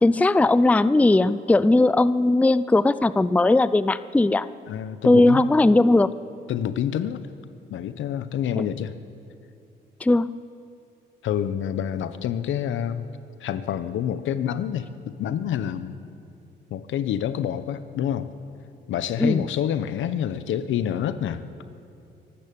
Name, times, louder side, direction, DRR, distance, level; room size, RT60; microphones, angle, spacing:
voice 1, 0.0-4.5 5.0-6.1 8.6-8.7 10.0-10.3 19.2-19.4, left 2 dB, 5° left, 16 dB, 0.5 m, -18 dB
voice 2, 4.7-5.4 6.5-7.2 7.7-8.9 11.2-13.1 13.4-16.0 16.7-18.3 18.9-21.4, left 9 dB, 75° left, 13 dB, 1.0 m, -27 dB
24.0 x 12.5 x 8.5 m, 2.5 s
cardioid pair, 90°, 20 cm